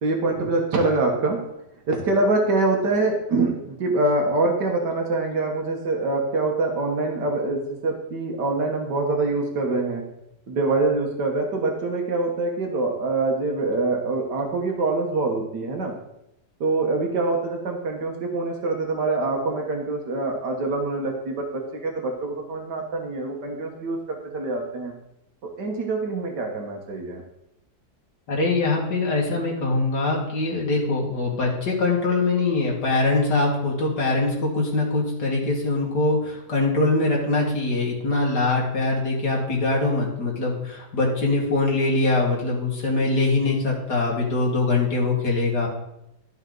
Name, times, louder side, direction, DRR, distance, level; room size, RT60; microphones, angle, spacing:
voice 1, 0.0-1.4 1.9-10.0 10.5-15.9 16.6-24.9 25.4-27.2, right 3 dB, 85° right, 1 dB, 2.0 m, -25 dB
voice 2, 28.3-45.7, left 3 dB, 80° left, -3 dB, 2.6 m, -23 dB
12.5 x 5.6 x 3.9 m, 0.84 s
omnidirectional pair, 1.8 m